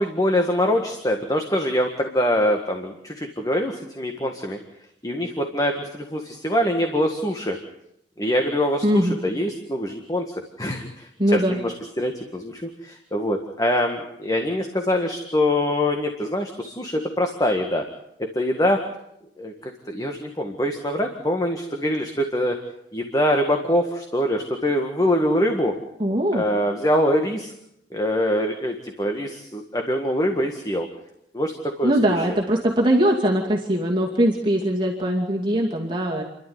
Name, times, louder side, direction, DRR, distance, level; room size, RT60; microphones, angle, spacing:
voice 1, 0.0-4.6 5.0-7.6 8.2-17.8 18.2-18.8 19.4-22.6 22.9-25.8 26.3-27.5 27.9-30.9 31.3-32.3, left 1 dB, 20° left, 4 dB, 1.7 m, -24 dB
voice 2, 8.8-9.2 11.2-11.6 26.0-26.4 31.8-36.2, right 1 dB, 25° right, -2 dB, 2.5 m, -21 dB
29.5 x 12.0 x 9.6 m, 0.79 s
head